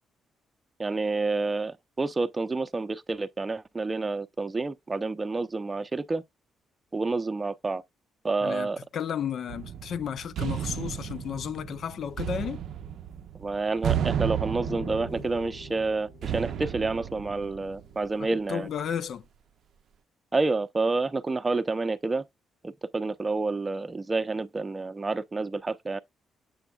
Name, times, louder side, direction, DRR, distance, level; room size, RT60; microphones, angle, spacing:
voice 1, 0.8-6.2 6.9-7.8 8.2-8.8 13.4-18.7 20.3-22.2 22.6-26.0, right 3 dB, 25° right, 0.6 m, -29 dB
voice 2, 8.4-12.6 18.5-19.3, left 8 dB, 60° left, 0.4 m, -33 dB
sound 1, 9.5-18.2, right 9 dB, 70° right, 0.5 m, -33 dB
sound 2, 14.7-18.2, left 8 dB, 80° left, 0.9 m, -48 dB
7.1 x 6.8 x 2.3 m
cardioid pair, 90°, 0 cm